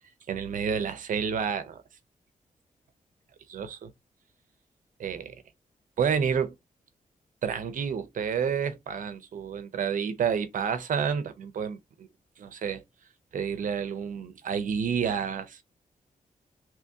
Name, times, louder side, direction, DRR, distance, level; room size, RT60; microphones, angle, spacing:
voice 1, 0.3-1.8 3.5-3.9 5.0-5.4 6.0-6.6 7.4-12.1 12.4-12.8 13.3-15.6, right 7 dB, 70° right, 0.6 m, -29 dB
3.0 x 2.7 x 3.5 m
wide cardioid pair, 150°, 14 cm